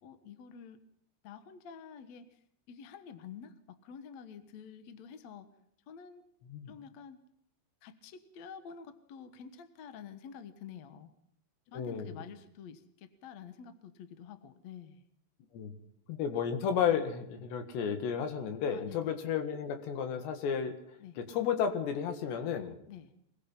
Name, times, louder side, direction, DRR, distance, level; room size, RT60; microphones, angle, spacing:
voice 1, 0.0-0.8 1.2-2.3 2.7-5.5 5.9-6.2 6.7-7.2 7.8-11.1 11.7-15.0 18.7-19.1 21.0-21.2 22.9-23.1, left 7 dB, 55° left, 10 dB, 2.0 m, -49 dB
voice 2, 11.7-12.3 15.5-15.8 16.1-20.7 21.2-22.7, left 7 dB, 85° left, 7 dB, 4.1 m, -32 dB
24.5 x 20.0 x 5.7 m, 0.69 s
omnidirectional pair, 4.9 m